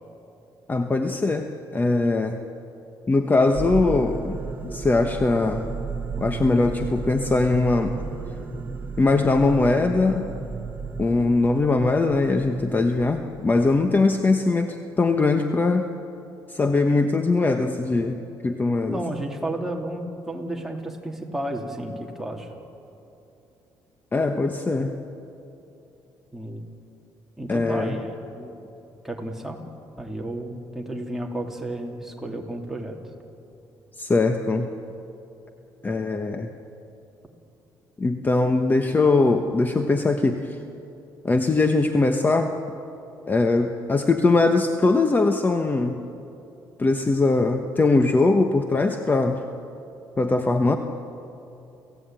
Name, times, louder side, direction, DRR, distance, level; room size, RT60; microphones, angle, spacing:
voice 1, 0.7-2.4 3.1-5.7 6.2-7.9 9.0-10.3 11.0-15.9 16.5-19.0 24.1-24.9 27.5-28.0 34.0-34.7 35.8-36.5 38.0-40.6 41.2-42.6 43.3-46.0 46.8-49.4 50.2-50.8, left 3 dB, 20° left, 6 dB, 1.2 m, -21 dB
sound 1, 3.5-14.0, right 5 dB, 25° right, 1.7 m, -34 dB
voice 2, 18.9-22.5 26.3-26.6 27.4-28.6 29.0-29.6 30.0-33.0, right 1 dB, 5° right, 0 dB, 3.0 m, -32 dB
28.0 x 16.5 x 9.1 m, 2.8 s
cardioid pair, 110°, 8 cm